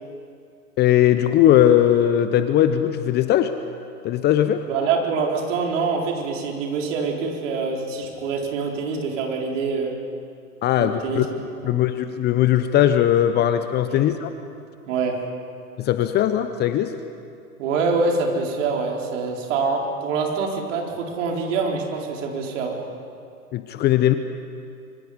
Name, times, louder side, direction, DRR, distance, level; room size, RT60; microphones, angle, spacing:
voice 1, 0.8-3.5 4.0-4.6 10.6-11.3 11.6-14.3 15.8-16.9 23.5-24.1, left 11 dB, 20° left, 10 dB, 0.8 m, -19 dB
voice 2, 4.7-10.0 10.8-11.3 11.6-11.8 13.9-14.1 14.9-15.2 17.6-22.8, right 4 dB, 55° right, 0 dB, 4.5 m, -25 dB
26.0 x 24.5 x 5.2 m, 2.5 s
figure-of-eight pair, 110°, 45 cm